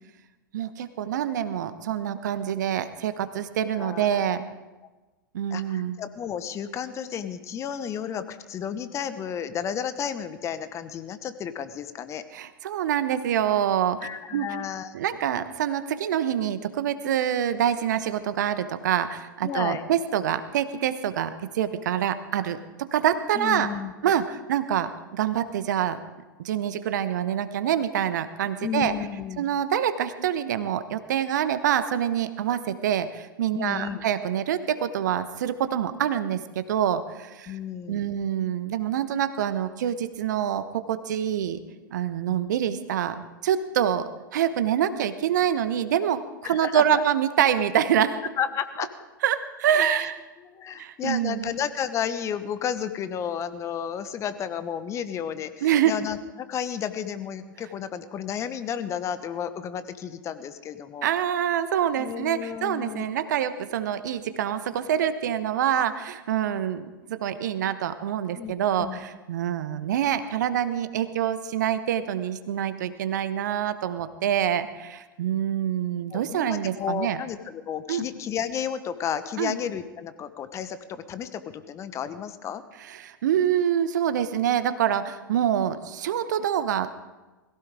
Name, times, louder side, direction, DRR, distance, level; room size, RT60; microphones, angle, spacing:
voice 1, 0.5-4.4 5.3-6.0 12.3-14.5 14.9-23.7 24.0-26.0 26.4-28.9 29.4-37.5 37.9-41.6 41.9-48.2 49.2-50.2 50.8-51.5 55.6-55.9 61.0-66.8 67.1-77.2 77.9-78.0 79.4-79.6 82.9-86.9, right 10 dB, 55° right, 12 dB, 1.1 m, -26 dB
voice 2, 3.7-4.4 5.5-12.2 14.0-14.9 19.4-19.8 23.3-23.9 28.6-29.5 33.5-34.0 37.5-38.0 46.4-47.0 48.4-48.9 50.0-50.1 50.4-61.1 62.0-63.1 68.3-68.5 68.8-69.0 76.1-82.6, left 8 dB, 25° left, 12 dB, 1.1 m, -32 dB
21.5 x 16.0 x 3.7 m, 1.2 s
figure-of-eight pair, 95°, 11 cm